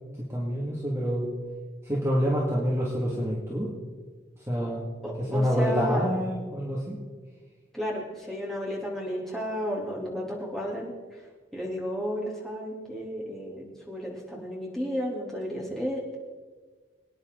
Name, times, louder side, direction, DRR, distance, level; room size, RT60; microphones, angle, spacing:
voice 1, 0.2-1.3 1.8-3.7 4.5-4.9 5.2-7.0, equal, 15° right, -5 dB, 2.1 m, -27 dB
voice 2, 5.0-6.1 7.7-11.2 11.5-16.1, equal, ahead, -5 dB, 3.1 m, -33 dB
24.5 x 9.7 x 3.9 m, 1.4 s
head